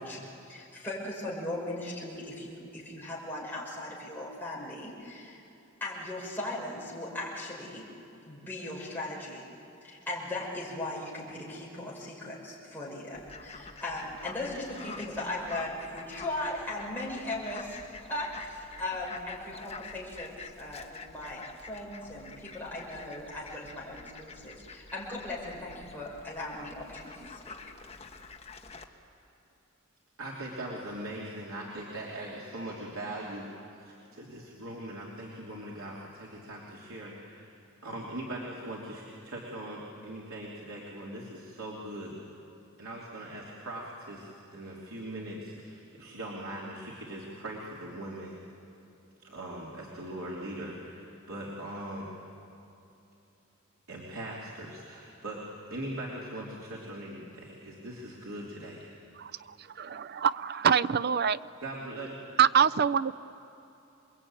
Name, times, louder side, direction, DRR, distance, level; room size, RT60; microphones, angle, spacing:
voice 1, 0.0-5.4 5.8-7.8 8.2-9.5 9.8-17.8 18.1-27.6, left 1 dB, 10° left, -5 dB, 5.7 m, -38 dB
Fowl, 13.1-28.8, left 4 dB, 30° left, 1.4 m, -47 dB
voice 2, 30.2-33.5 33.8-37.5 37.8-42.1 42.8-48.4 49.2-52.1 53.9-55.4 55.7-58.8 61.6-62.1, right 1 dB, 80° right, -4 dB, 3.2 m, -40 dB
voice 3, 59.8-61.4 62.4-63.1, right 7 dB, 50° right, 16 dB, 0.5 m, -25 dB
28.0 x 21.5 x 8.9 m, 2.9 s
head